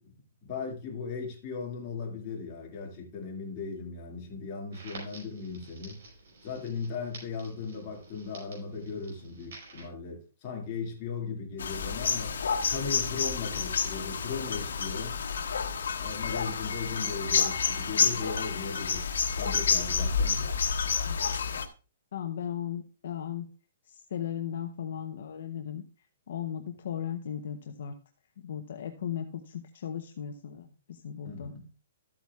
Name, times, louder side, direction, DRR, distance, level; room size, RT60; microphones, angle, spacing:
voice 1, 0.4-6.0 6.4-12.4 12.7-15.2 15.9-19.1 19.4-20.5 31.2-31.7, left 5 dB, 20° left, 2.2 m, -37 dB
Crackle, 4.7-9.8, right 3 dB, 50° right, 5.3 m, -50 dB
sound 1, 11.6-21.7, left 6 dB, 90° left, 1.2 m, -29 dB
voice 2, 22.1-23.5 23.9-25.8 26.3-27.9 28.4-31.5, left 9 dB, 50° left, 0.8 m, -36 dB
13.0 x 8.6 x 2.4 m
hypercardioid pair, 180°, 0 cm